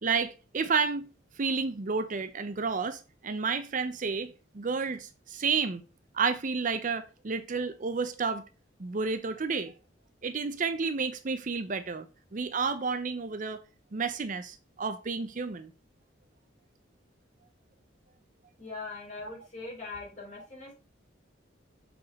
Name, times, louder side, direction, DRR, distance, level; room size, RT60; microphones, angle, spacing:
voice 1, 0.0-1.1 1.4-5.8 6.1-8.4 8.8-9.7 10.2-12.1 12.3-13.6 13.9-15.7 19.2-19.3, right 5 dB, 45° right, 0.6 m, -31 dB
voice 2, 18.6-20.7, left 3 dB, 40° left, 4.3 m, -41 dB
6.7 x 4.3 x 4.1 m
head